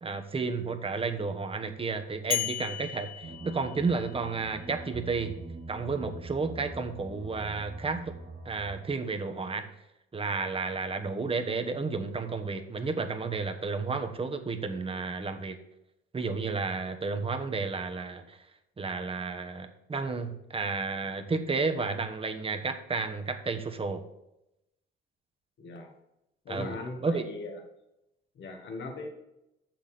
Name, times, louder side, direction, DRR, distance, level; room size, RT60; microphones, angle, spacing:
voice 1, 0.0-5.4 5.7-8.2 8.4-9.7 10.1-15.6 16.1-18.4 18.8-24.0 26.5-26.8 27.0-27.2, right 4 dB, 30° right, 7 dB, 1.1 m, -32 dB
sound 1, 2.3-4.4, left 11 dB, 45° left, 0.7 m, -35 dB
sound 2, 3.2-8.9, right 3 dB, 50° right, 1.3 m, -43 dB
voice 2, 25.6-25.9 26.5-27.6 28.4-29.1, left 3 dB, 65° left, 4 dB, 1.8 m, -39 dB
7.0 x 6.0 x 6.8 m, 0.87 s
cardioid pair, 90°, 20 cm